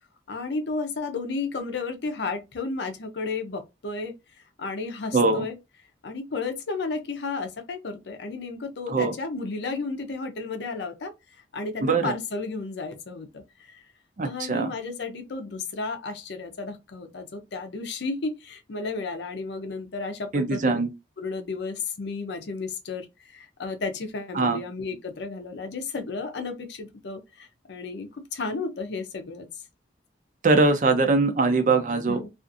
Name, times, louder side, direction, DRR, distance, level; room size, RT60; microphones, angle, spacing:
voice 1, 0.3-4.1 4.6-5.6 6.0-11.1 11.5-13.8 14.2-20.8 21.2-29.6 32.1-32.3, left 3 dB, 75° left, 0.6 m, -33 dB
voice 2, 5.1-5.5 8.9-9.1 11.8-12.1 14.2-14.7 20.3-20.9 24.3-24.6 30.4-32.2, right 3 dB, 45° right, 0.5 m, -22 dB
2.4 x 2.4 x 2.6 m
head